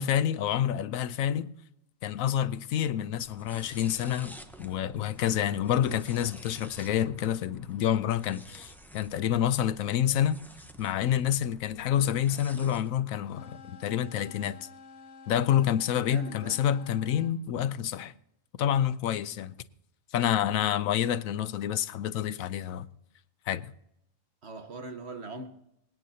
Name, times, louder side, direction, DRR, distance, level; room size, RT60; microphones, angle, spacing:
voice 1, 0.0-1.5 2.0-10.4 10.8-14.6 15.3-18.1 18.6-19.5 20.1-22.9 23.5-23.6, left 10 dB, 85° left, 1.1 m, -28 dB
sound 1, 3.1-12.9, right 1 dB, ahead, 0.7 m, -51 dB
sound 2, 13.2-17.4, left 4 dB, 60° left, 1.5 m, -50 dB
voice 2, 16.1-16.5 24.4-25.5, right 2 dB, 55° right, 1.4 m, -40 dB
26.5 x 9.3 x 2.8 m
omnidirectional pair, 1.4 m